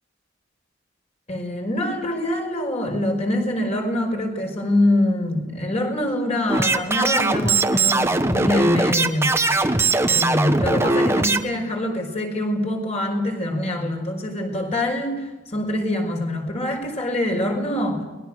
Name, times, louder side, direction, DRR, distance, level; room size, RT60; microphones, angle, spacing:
voice 1, 1.3-9.4 10.1-18.0, left 1 dB, 35° left, 3 dB, 5.5 m, -24 dB
sound 1, 6.5-11.4, right 3 dB, 15° right, 1.3 m, -20 dB
30.0 x 21.5 x 6.4 m, 1.1 s
head